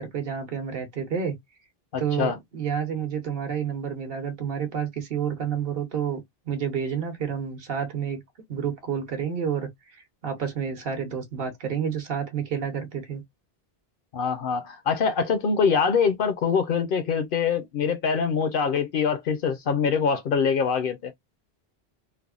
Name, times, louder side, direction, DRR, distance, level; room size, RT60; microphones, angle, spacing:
voice 1, 0.0-1.4 2.0-8.2 8.5-13.2, right 7 dB, 65° right, 1.1 m, -29 dB
voice 2, 1.9-2.4 14.1-21.1, left 6 dB, 65° left, 0.7 m, -24 dB
3.3 x 2.1 x 2.3 m
omnidirectional pair, 1.1 m